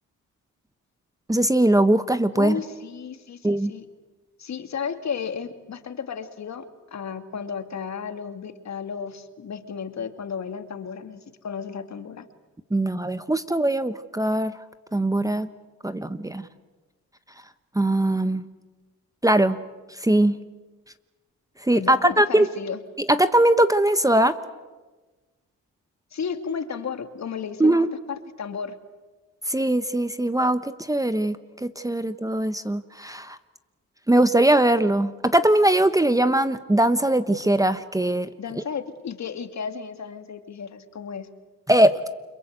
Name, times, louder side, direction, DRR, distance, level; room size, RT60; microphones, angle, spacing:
voice 1, 1.3-2.6 3.4-3.7 12.7-14.5 14.9-15.5 15.8-16.5 17.7-18.4 19.2-19.6 19.9-20.3 21.6-22.5 23.1-24.3 27.6-27.9 29.5-33.4 34.1-38.3 38.6-38.7 41.7-41.9, right 1 dB, 10° right, 12 dB, 1.1 m, -21 dB
voice 2, 2.3-3.9 4.4-6.7 6.9-12.3 21.7-22.8 26.1-28.8 38.4-41.3, left 6 dB, 55° left, 8 dB, 2.4 m, -33 dB
29.5 x 22.5 x 8.1 m, 1.2 s
cardioid pair, 80°, 33 cm